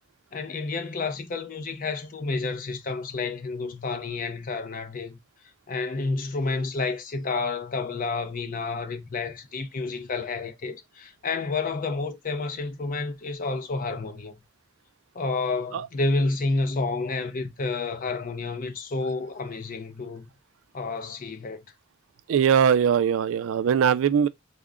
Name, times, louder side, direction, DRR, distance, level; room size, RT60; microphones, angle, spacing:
voice 1, 0.3-5.2 5.7-14.3 15.1-20.2 20.7-21.7, left 3 dB, 45° left, 0.6 m, -30 dB
voice 2, 22.3-24.3, right 7 dB, 70° right, 0.3 m, -21 dB
3.6 x 2.1 x 3.6 m
head